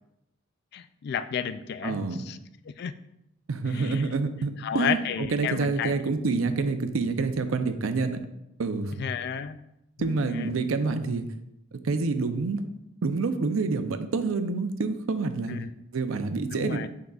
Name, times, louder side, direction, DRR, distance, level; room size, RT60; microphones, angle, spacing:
voice 1, 0.7-2.4 2.6-2.9 3.7-4.1 4.6-6.0 9.0-9.6 10.0-10.5 15.5-15.7 16.5-16.9, left 7 dB, 55° left, 13 dB, 0.3 m, -32 dB
voice 2, 1.8-2.2 3.5-8.2 8.6-9.1 10.0-11.3 11.8-12.7 13.0-15.6 15.9-16.9, right 4 dB, 90° right, 9 dB, 0.5 m, -27 dB
10.5 x 3.8 x 2.3 m, 0.83 s
head